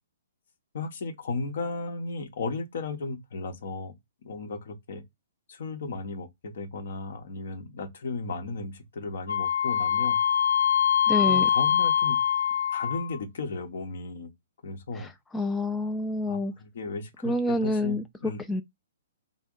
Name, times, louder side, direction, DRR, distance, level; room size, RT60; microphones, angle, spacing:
voice 1, 0.7-3.9 4.2-5.0 5.5-10.2 11.2-12.2 12.7-14.3 14.6-15.1 16.3-18.4, left 3 dB, 60° left, 0.9 m, -35 dB
Wind instrument woodwind instrument, 9.3-13.2, left 9 dB, 85° left, 0.5 m, -24 dB
voice 2, 11.1-11.5 15.0-16.5 17.2-18.0 18.5-18.6, left 2 dB, 10° left, 0.3 m, -28 dB
3.4 x 2.1 x 3.7 m
figure-of-eight pair, 120°, 0 cm